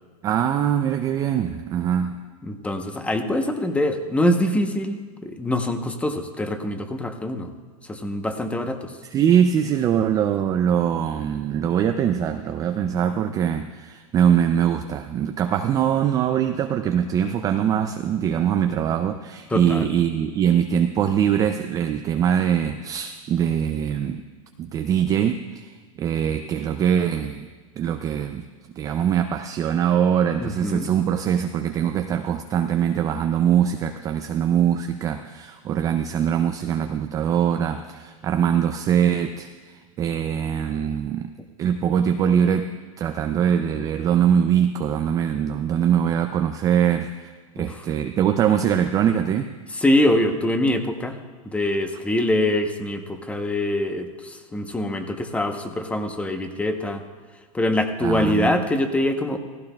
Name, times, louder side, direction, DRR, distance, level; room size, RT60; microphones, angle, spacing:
voice 1, 0.2-2.2 9.1-24.2 24.6-27.5 27.8-28.4 28.8-41.3 41.6-42.7 43.0-49.5 58.0-58.5, right 9 dB, 20° right, 7 dB, 0.3 m, -22 dB
voice 2, 2.4-7.5 7.9-8.9 19.5-19.9 30.4-30.9 47.6-47.8 49.7-51.2 51.4-57.0 57.5-59.4, left 1 dB, 5° left, 7 dB, 0.8 m, -24 dB
15.5 x 15.0 x 2.2 m, 1.5 s
hypercardioid pair, 140°, 19 cm